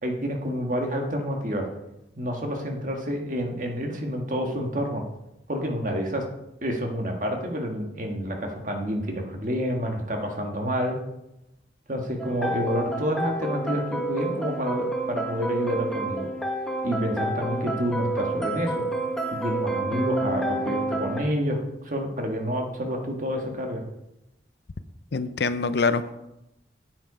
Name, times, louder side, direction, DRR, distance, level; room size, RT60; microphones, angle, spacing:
voice 1, 0.0-1.7 2.1-5.0 5.5-6.3 6.6-11.0 11.9-16.3 16.8-18.8 19.3-21.6 21.8-23.8, equal, 45° right, 2 dB, 1.6 m, -28 dB
sound 1, 12.2-21.2, right 1 dB, 5° left, 1.0 m, -29 dB
voice 2, 25.1-26.2, left 4 dB, 65° left, 13 dB, 0.6 m, -25 dB
8.9 x 8.0 x 4.9 m, 0.89 s
head